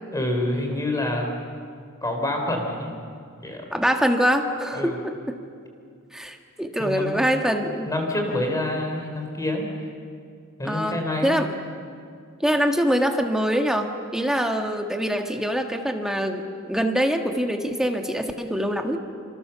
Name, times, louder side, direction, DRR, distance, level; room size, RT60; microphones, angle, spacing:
voice 1, 0.1-1.3 2.0-2.9 3.4-3.7 4.7-5.0 6.8-7.2 7.9-9.7 10.6-11.4, left 1 dB, 15° left, 3 dB, 3.6 m, -27 dB
voice 2, 3.7-5.3 6.1-7.9 10.6-11.5 12.4-16.4 16.7-19.0, equal, ahead, 4 dB, 1.7 m, -24 dB
27.5 x 26.0 x 7.0 m, 2.3 s
head